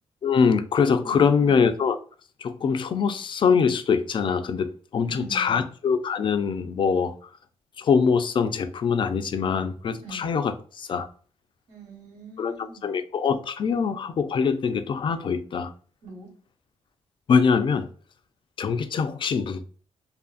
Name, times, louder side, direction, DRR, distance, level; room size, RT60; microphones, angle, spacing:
voice 1, 0.2-2.0 2.4-7.1 7.8-11.1 12.4-15.7 17.3-17.9 18.6-19.6, left 6 dB, 45° left, 0.3 m, -23 dB
voice 2, 1.0-1.6 5.1-5.7 10.0-10.3 11.7-13.0 16.0-16.3, right 2 dB, 80° right, 1.1 m, -42 dB
2.6 x 2.5 x 2.4 m
cardioid pair, 75°, 12 cm